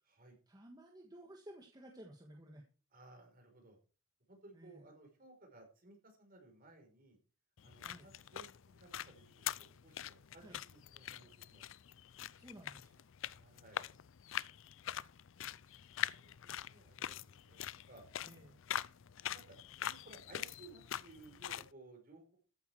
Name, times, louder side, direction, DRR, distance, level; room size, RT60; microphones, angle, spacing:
voice 1, 0.5-2.6 4.5-4.8 7.8-8.1 10.4-10.6 12.3-13.0 18.2-18.6, right 1 dB, 20° right, 1 dB, 1.6 m, -55 dB
voice 2, 2.9-3.8 4.3-7.2 7.6-11.6 13.3-13.8 15.4-18.0 19.3-19.5 19.8-22.4, right 2 dB, 45° right, 3 dB, 5.0 m, -59 dB
sound 1, 7.6-21.7, left 10 dB, 65° left, 0.5 m, -44 dB
14.0 x 8.7 x 4.7 m, 0.37 s
head